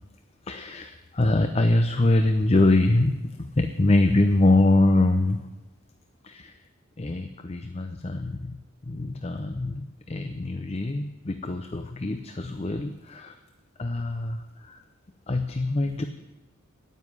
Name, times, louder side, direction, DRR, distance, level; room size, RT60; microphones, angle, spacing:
voice 1, 0.5-5.4 6.2-6.5 7.0-8.5 8.9-13.3 13.8-14.4 14.7-14.8 15.3-16.1, left 2 dB, 30° left, 7 dB, 0.6 m, -24 dB
9.4 x 9.4 x 9.7 m, 1.1 s
head